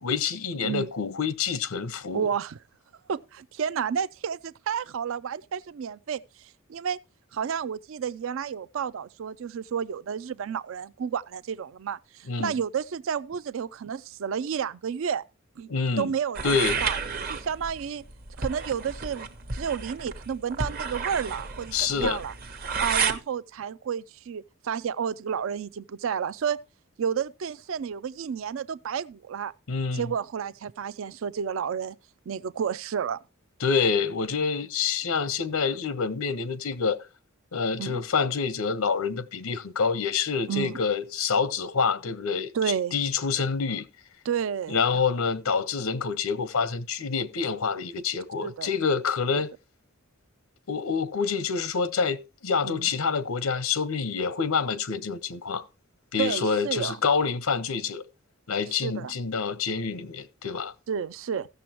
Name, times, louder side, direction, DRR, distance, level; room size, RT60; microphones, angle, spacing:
voice 1, 0.0-2.2 12.3-12.5 15.7-16.1 16.4-16.8 21.7-22.2 29.7-30.1 33.6-37.0 37.5-42.5 42.9-43.9 44.7-49.5 50.7-55.6 56.1-58.0 58.5-60.7, left 5 dB, 90° left, 0.8 m, -27 dB
voice 2, 2.1-2.6 3.1-7.0 7.3-15.2 15.6-15.7 16.0-17.0 17.3-18.0 18.4-22.3 22.8-26.6 27.0-29.5 29.9-32.0 32.3-33.2 37.8-38.0 40.5-40.8 42.5-43.0 44.2-45.0 48.4-48.7 49.3-49.4 52.6-52.9 56.2-57.0 58.8-59.1 60.9-61.5, right 7 dB, 65° right, 0.4 m, -31 dB
sound 1, 16.3-23.2, right 5 dB, 45° right, 0.9 m, -31 dB
15.5 x 6.9 x 2.9 m
head